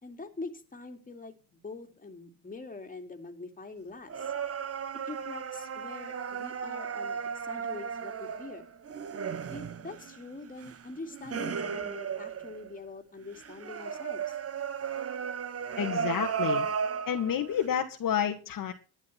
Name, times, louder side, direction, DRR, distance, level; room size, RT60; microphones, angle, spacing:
voice 1, 0.0-4.3 5.0-8.7 9.5-14.4, left 3 dB, 20° left, 4 dB, 3.0 m, -44 dB
sound 1, 4.1-12.9 13.4-17.7, right 7 dB, 30° right, 1.4 m, -35 dB
voice 2, 15.8-16.7 17.1-18.7, left 9 dB, 45° left, 3 dB, 2.0 m, -29 dB
12.0 x 9.5 x 5.8 m, 0.33 s
supercardioid pair, 80°, 44 cm